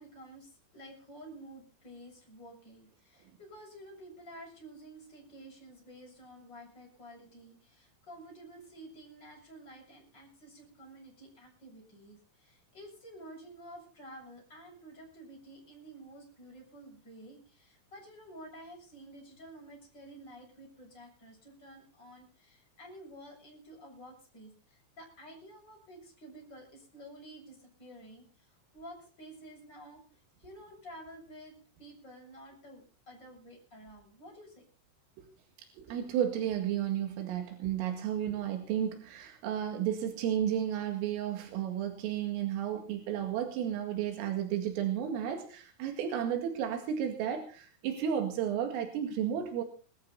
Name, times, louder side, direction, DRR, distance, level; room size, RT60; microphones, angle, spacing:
voice 1, 0.0-30.0 30.4-31.5 31.8-34.6, right 1 dB, 20° left, 0 dB, 7.7 m, -51 dB
voice 2, 35.8-49.6, right 9 dB, 90° right, 4 dB, 4.6 m, -33 dB
22.5 x 13.5 x 4.1 m, 0.38 s
omnidirectional pair, 5.7 m